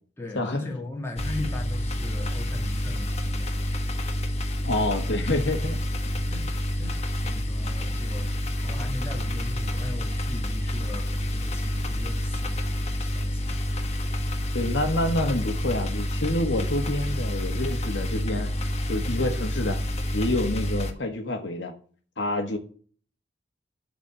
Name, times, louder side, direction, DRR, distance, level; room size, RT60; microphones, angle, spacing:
voice 1, 0.2-3.7 6.2-6.5 6.8-13.8 14.1-14.4, left 2 dB, 15° left, 1 dB, 2.2 m, -38 dB
sound 1, 1.2-20.9, equal, 35° left, 1.4 m, -28 dB
voice 2, 4.6-5.8 14.5-18.5 18.9-19.8 20.1-21.7 22.2-22.6, left 1 dB, 75° left, 5 dB, 1.7 m, -27 dB
12.0 x 4.3 x 8.1 m, 0.44 s
head